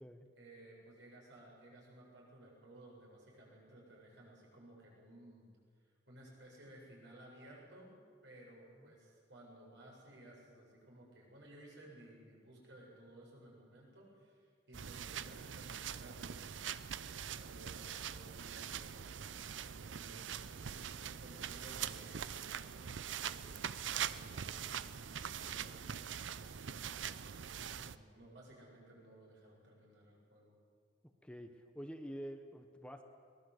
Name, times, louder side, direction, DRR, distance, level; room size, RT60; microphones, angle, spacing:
voice 1, 0.4-5.5 6.1-7.9 8.2-20.3 20.8-27.0 27.6-30.6, right 1 dB, 70° right, -2 dB, 7.9 m, -58 dB
sound 1, 14.7-28.0, right 8 dB, 85° right, 0.6 m, -43 dB
voice 2, 31.2-33.0, equal, 5° left, 6 dB, 1.1 m, -47 dB
23.0 x 19.5 x 8.0 m, 2.1 s
head